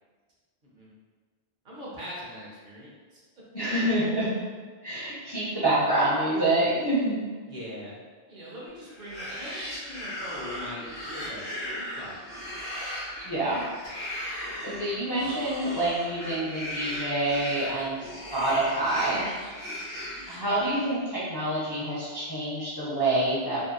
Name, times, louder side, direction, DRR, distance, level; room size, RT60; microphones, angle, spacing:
voice 1, 1.6-3.2 7.5-8.0 8.3-12.2, equal, 60° right, -6 dB, 0.8 m, -41 dB
voice 2, 3.5-4.3 4.8-7.3 13.2-13.6 14.3-19.2 20.3-23.6, right 1 dB, 30° left, -10 dB, 0.5 m, -27 dB
sound 1, 8.9-20.9, left 1 dB, 15° left, 1.0 m, -37 dB
2.7 x 2.5 x 2.2 m, 1.5 s
omnidirectional pair, 1.0 m